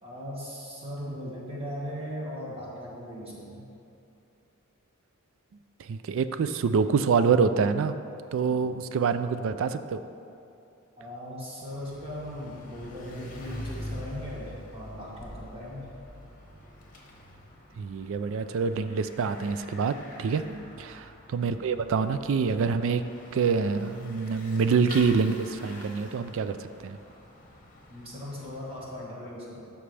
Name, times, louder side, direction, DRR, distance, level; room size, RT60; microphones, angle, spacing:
voice 1, 0.0-3.7 11.0-15.9 20.4-20.6 27.9-29.7, equal, 25° right, -6 dB, 1.9 m, -39 dB
voice 2, 5.8-7.9 8.3-10.0 17.8-20.4 21.0-23.0 23.3-27.0, right 5 dB, 65° right, 11 dB, 0.3 m, -26 dB
Bicycle / Mechanisms, 11.5-29.1, left 1 dB, 40° left, 1.2 m, -45 dB
12.5 x 5.8 x 3.3 m, 2.7 s
head